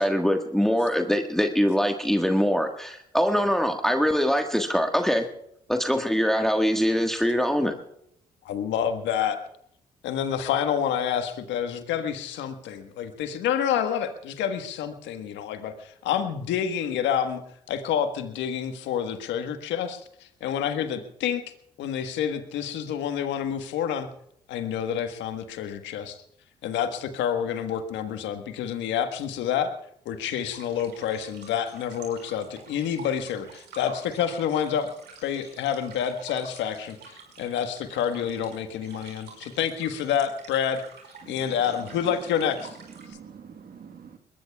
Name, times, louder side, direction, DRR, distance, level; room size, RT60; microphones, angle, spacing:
voice 1, 0.0-5.3 5.7-7.7, equal, ahead, 4 dB, 1.5 m, -23 dB
voice 2, 8.4-9.4 10.0-17.4 17.7-21.4 21.8-24.1 24.5-26.2 26.6-29.7 30.0-34.9 35.2-40.8 41.3-42.7, left 8 dB, 75° left, 8 dB, 1.4 m, -28 dB
sound 1, 30.3-43.1, right 5 dB, 70° right, 5.0 m, -48 dB
voice 3, 41.2-41.7 42.5-42.6 42.9-44.2, right 7 dB, 50° right, 7 dB, 1.5 m, -46 dB
22.5 x 20.5 x 2.4 m, 0.73 s
hypercardioid pair, 45°, 19 cm